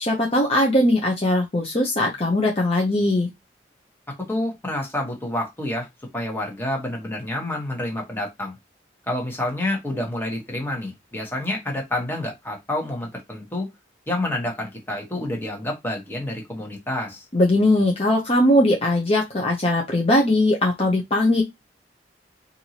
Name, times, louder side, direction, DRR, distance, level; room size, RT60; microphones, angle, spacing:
voice 1, 0.0-3.3 17.3-21.4, left 1 dB, 35° left, 0.7 m, -20 dB
voice 2, 4.1-5.9 6.1-8.6 9.1-13.7 14.1-17.2, left 1 dB, 15° left, 1.2 m, -28 dB
4.5 x 2.6 x 2.9 m
head